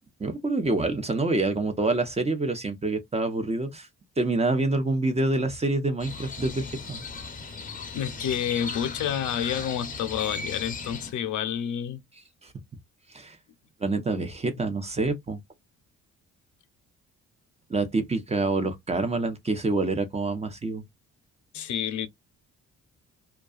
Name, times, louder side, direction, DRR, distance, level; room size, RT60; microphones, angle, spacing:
voice 1, 0.2-3.9 4.2-7.0 12.4-12.5 13.1-13.4 13.8-15.4 17.7-20.8, right 2 dB, 20° right, 0.7 m, -27 dB
Crow, 6.0-11.1, left 4 dB, 30° left, 0.7 m, -37 dB
voice 2, 7.9-12.0 21.5-22.1, left 9 dB, 75° left, 0.6 m, -29 dB
2.7 x 2.2 x 2.4 m
cardioid pair, 90°, 30 cm